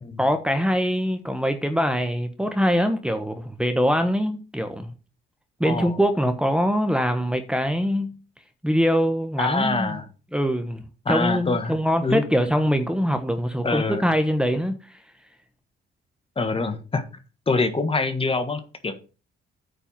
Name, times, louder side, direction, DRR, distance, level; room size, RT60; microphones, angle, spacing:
voice 1, 0.2-4.9 5.6-8.2 8.6-10.0 10.3-15.0, equal, 5° right, 1.2 m, -23 dB
voice 2, 5.6-6.0 9.4-10.0 11.0-12.3 13.6-14.1 16.3-17.0 17.5-18.9, left 3 dB, 30° left, 1.6 m, -25 dB
9.0 x 4.5 x 7.4 m
cardioid pair, 90°, 20 cm